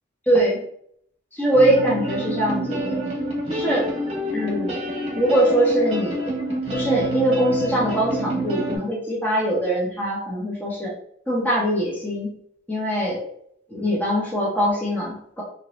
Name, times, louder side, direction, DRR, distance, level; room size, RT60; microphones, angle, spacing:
voice 1, 0.3-0.6 1.3-3.0 3.5-3.9 4.3-4.8 5.1-6.3 6.7-10.9 11.3-12.3 12.7-13.2 13.7-15.4, right 1 dB, 10° left, -5 dB, 1.2 m, -22 dB
sound 1, 1.5-8.8, right 1 dB, 35° right, 1.3 m, -27 dB
3.7 x 3.0 x 3.2 m, 0.67 s
head